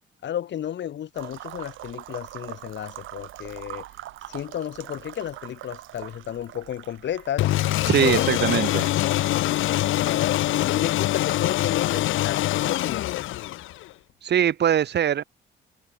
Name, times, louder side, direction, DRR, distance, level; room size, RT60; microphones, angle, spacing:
voice 1, 0.2-3.8 4.3-7.5 8.0-9.2 9.6-13.1, left 10 dB, 65° left, 2.7 m, -32 dB
sound 1, 1.1-10.9, right 14 dB, 85° right, 4.8 m, -43 dB
sound 2, 7.4-13.9, left 15 dB, 80° left, 0.9 m, -24 dB
voice 2, 7.9-8.9 14.2-15.2, right 9 dB, 60° right, 1.5 m, -22 dB
cardioid pair, 90°, 20 cm